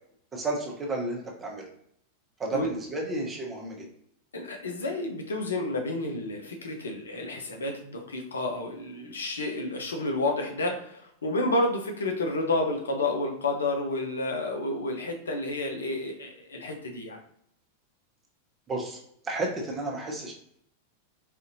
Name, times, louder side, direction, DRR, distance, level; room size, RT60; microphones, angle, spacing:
voice 1, 0.3-1.7 2.4-3.9 18.7-20.3, right 2 dB, 20° right, -1 dB, 0.8 m, -32 dB
voice 2, 4.3-17.2, left 2 dB, 70° left, 2 dB, 0.6 m, -30 dB
4.2 x 2.6 x 2.6 m, 0.70 s
figure-of-eight pair, 90°, 0 cm